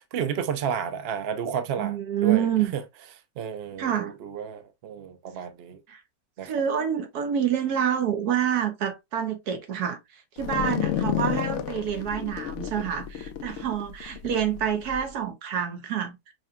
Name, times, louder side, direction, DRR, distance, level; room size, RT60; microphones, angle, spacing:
voice 1, 0.0-2.5 2.7-2.8 3.4-5.8 6.4-6.5, right 8 dB, 60° right, 0.7 m, -31 dB
voice 2, 1.8-2.7 3.8-4.1 5.9-6.0 6.4-16.3, right 9 dB, 80° right, 1.4 m, -27 dB
sound 1, 10.4-15.0, left 10 dB, 70° left, 0.7 m, -31 dB
4.9 x 3.0 x 2.2 m
omnidirectional pair, 1.6 m